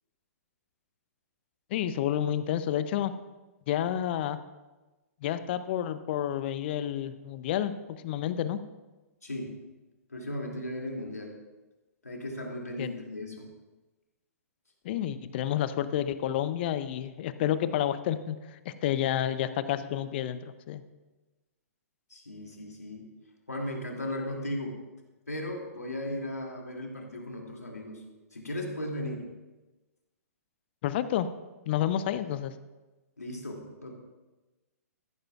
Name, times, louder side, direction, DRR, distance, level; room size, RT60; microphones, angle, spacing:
voice 1, 1.7-3.1 3.7-4.4 5.2-8.6 12.8-12.9 14.8-20.8 30.8-31.3 31.7-32.5, left 11 dB, 40° left, 13 dB, 0.6 m, -30 dB
voice 2, 9.2-9.6 10.1-11.4 12.0-13.5 22.1-23.1 23.5-24.8 25.3-28.0 28.3-29.2 33.2-33.9, left 1 dB, 85° left, 0 dB, 2.5 m, -36 dB
14.0 x 12.5 x 2.4 m, 1.1 s
figure-of-eight pair, 120°, 8 cm